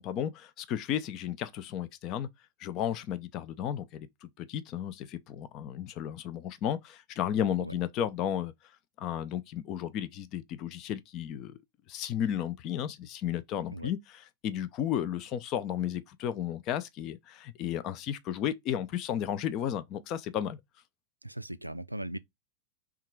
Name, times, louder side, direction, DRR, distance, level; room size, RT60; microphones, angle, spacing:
voice 1, 0.0-2.3 2.6-8.5 9.0-11.6 11.9-20.6, left 10 dB, 40° left, 0.5 m, -33 dB
voice 2, 21.2-22.2, right 1 dB, 85° right, 0.3 m, -38 dB
3.6 x 2.4 x 4.5 m
figure-of-eight pair, 90°, 0 cm